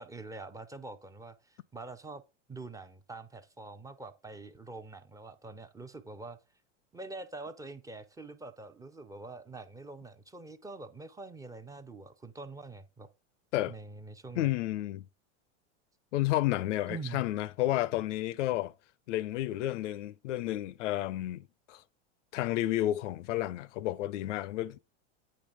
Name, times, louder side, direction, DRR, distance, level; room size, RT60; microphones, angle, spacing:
voice 1, 0.0-2.2 2.5-6.4 6.9-13.1 13.7-14.5 16.8-17.2, right 3 dB, 10° right, 0.4 m, -45 dB
voice 2, 14.4-15.0 16.1-18.7 19.1-21.8 22.3-24.8, left 15 dB, 85° left, 0.6 m, -31 dB
8.7 x 3.3 x 4.8 m
supercardioid pair, 120°, 36 cm